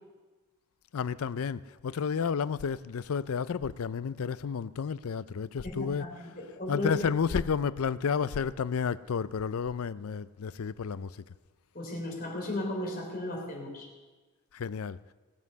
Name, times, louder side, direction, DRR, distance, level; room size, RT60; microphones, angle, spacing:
voice 1, 0.9-6.0 6.7-11.2 14.5-15.0, left 6 dB, 75° left, 0.4 m, -31 dB
voice 2, 5.6-6.9 11.7-13.9, left 1 dB, 40° left, 3.3 m, -35 dB
19.5 x 7.4 x 6.8 m
head